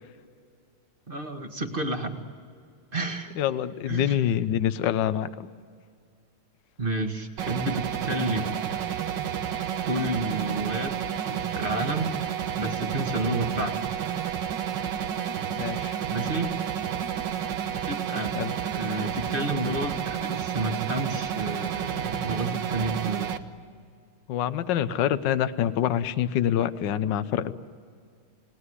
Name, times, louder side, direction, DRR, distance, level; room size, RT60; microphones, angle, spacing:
voice 1, 1.1-2.2 2.9-3.3 3.9-4.2 6.8-8.7 9.9-11.0 11.3-12.2 12.6-13.9 16.1-16.6 17.8-18.3 18.6-23.3, right 2 dB, 25° right, 5 dB, 1.9 m, -30 dB
voice 2, 3.4-5.5 15.6-16.0 18.3-18.5 24.3-27.5, left 10 dB, 60° left, 13 dB, 1.5 m, -26 dB
sound 1, 7.4-23.4, right 9 dB, 60° right, 1.7 m, -30 dB
29.5 x 19.0 x 9.8 m, 2.2 s
omnidirectional pair, 2.4 m